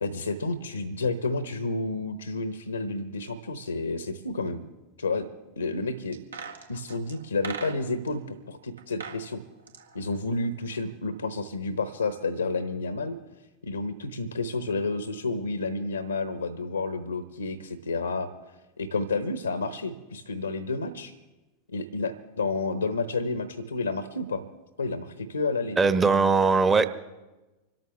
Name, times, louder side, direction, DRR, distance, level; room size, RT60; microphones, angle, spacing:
voice 1, 0.0-4.6 5.0-5.3 5.6-6.2 6.7-9.4 9.9-13.1 13.6-18.3 18.8-21.1 21.7-24.4 24.8-25.8, left 3 dB, 75° left, 12 dB, 1.0 m, -30 dB
sound 1, 6.1-8.1 8.8-9.2 9.5-10.9 11.2-11.3, right 5 dB, 70° right, 1.9 m, -40 dB
voice 2, 25.8-26.9, right 4 dB, 15° right, 10 dB, 1.0 m, -20 dB
26.0 x 13.0 x 3.4 m, 1.1 s
figure-of-eight pair, 90°, 0 cm